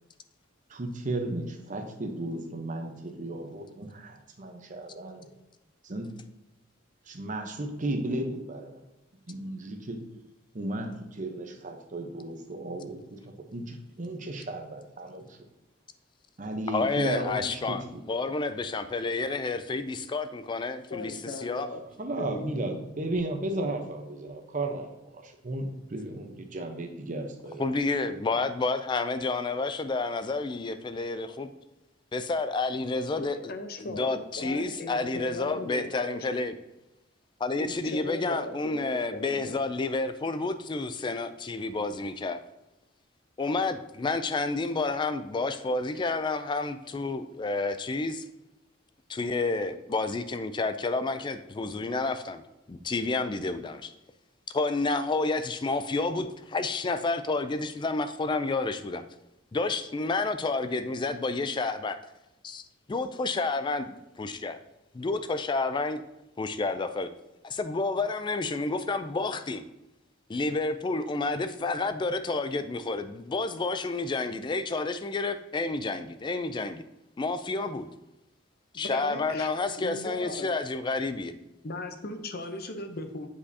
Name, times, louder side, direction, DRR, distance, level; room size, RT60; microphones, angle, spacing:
voice 1, 0.7-5.3 5.8-6.1 7.1-8.8 9.3-10.1 10.5-15.4 16.4-17.7 22.0-27.7 28.1-28.2, right 2 dB, 40° right, 5 dB, 0.8 m, -34 dB
voice 2, 16.7-21.1 21.4-21.7 27.6-31.5 32.1-33.5 33.8-36.5 37.4-42.4 43.4-48.2 49.1-52.4 52.7-53.9 54.5-59.0 59.5-62.0 62.4-64.6 64.9-66.0 66.4-67.1 67.4-69.6 70.3-76.8 77.2-77.9 78.7-81.3, left 3 dB, 25° left, 11 dB, 0.3 m, -30 dB
voice 3, 20.9-21.8 22.2-22.7 33.2-36.3 37.6-39.6 78.7-79.5 79.8-80.5 81.6-83.3, left 2 dB, 50° left, 7 dB, 0.7 m, -38 dB
8.5 x 5.0 x 2.7 m, 0.95 s
head